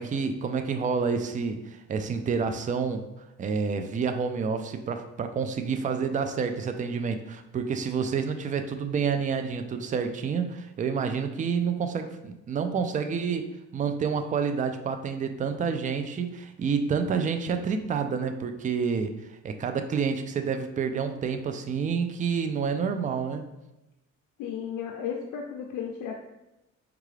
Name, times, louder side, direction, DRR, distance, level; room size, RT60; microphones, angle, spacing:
voice 1, 0.0-3.0 3.4-19.1 19.4-23.4, right 6 dB, 25° right, 7 dB, 0.3 m, -29 dB
voice 2, 24.4-26.2, left 7 dB, 85° left, 1 dB, 0.4 m, -34 dB
4.6 x 2.4 x 3.2 m, 0.96 s
cardioid pair, 90°, 30 cm